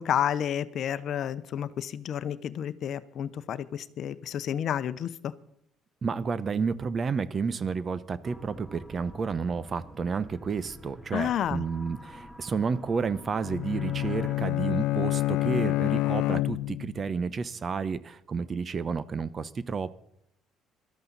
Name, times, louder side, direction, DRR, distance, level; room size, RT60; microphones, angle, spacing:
voice 1, 0.0-5.3 11.1-11.6, left 9 dB, 60° left, 14 dB, 0.8 m, -30 dB
voice 2, 6.0-20.0, right 5 dB, 40° right, 17 dB, 0.8 m, -31 dB
sound 1, 8.2-14.3, equal, 5° right, 1.7 m, -48 dB
Bowed string instrument, 13.4-17.1, left 17 dB, 80° left, 0.4 m, -28 dB
18.0 x 13.0 x 4.1 m, 0.75 s
cardioid pair, 90°, 0 cm